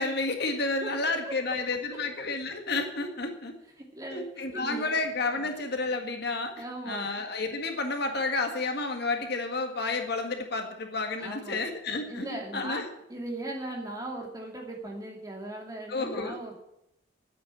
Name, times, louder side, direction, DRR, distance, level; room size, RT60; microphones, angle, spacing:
voice 1, 0.0-3.5 4.1-12.9 15.9-16.4, left 3 dB, 55° left, 5 dB, 1.8 m, -31 dB
voice 2, 3.9-4.9 5.4-5.5 6.6-7.1 11.2-11.6 12.1-12.8 13.1-16.6, right 1 dB, 20° right, 0 dB, 2.6 m, -38 dB
9.9 x 8.9 x 9.7 m, 0.81 s
head